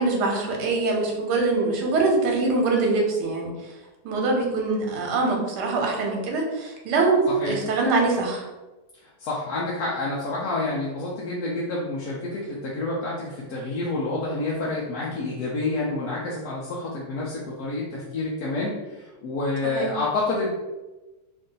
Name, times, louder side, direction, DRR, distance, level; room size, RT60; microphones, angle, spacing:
voice 1, 0.0-3.5 4.0-8.5 19.6-20.0, right 3 dB, 85° right, 1 dB, 1.4 m, -23 dB
voice 2, 7.3-7.6 9.0-20.5, left 2 dB, 70° left, -5 dB, 1.1 m, -28 dB
3.1 x 2.6 x 3.7 m, 1.1 s
omnidirectional pair, 1.7 m